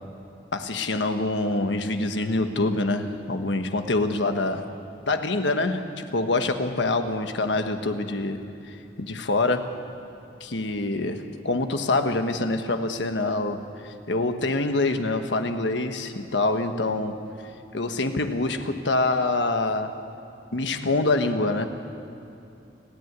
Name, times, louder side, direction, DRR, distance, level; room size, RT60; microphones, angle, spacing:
voice 1, 0.5-4.7 5.1-8.4 8.7-9.8 10.4-17.2 17.7-19.9 20.5-21.7, left 2 dB, 85° left, 7 dB, 1.3 m, -25 dB
29.0 x 9.8 x 9.4 m, 2.7 s
head